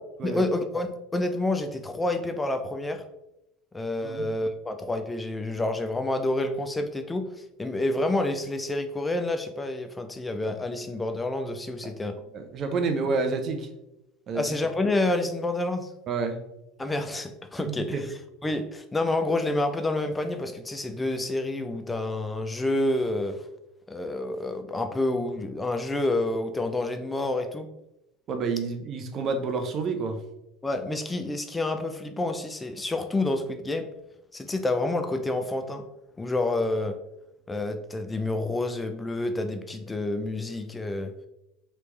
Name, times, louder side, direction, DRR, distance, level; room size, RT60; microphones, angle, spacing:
voice 1, 0.2-3.0 3.7-12.2 14.3-15.9 16.8-18.0 18.4-23.5 23.9-27.7 30.6-33.9 34.3-35.9 36.2-37.0 37.5-41.1, left 2 dB, 15° left, 7 dB, 0.4 m, -28 dB
voice 2, 12.3-13.7 14.3-14.4 16.1-16.4 17.6-18.0 28.3-30.2, right 4 dB, 45° right, 6 dB, 0.6 m, -29 dB
3.1 x 3.0 x 3.1 m, 0.87 s
hypercardioid pair, 80°, 0 cm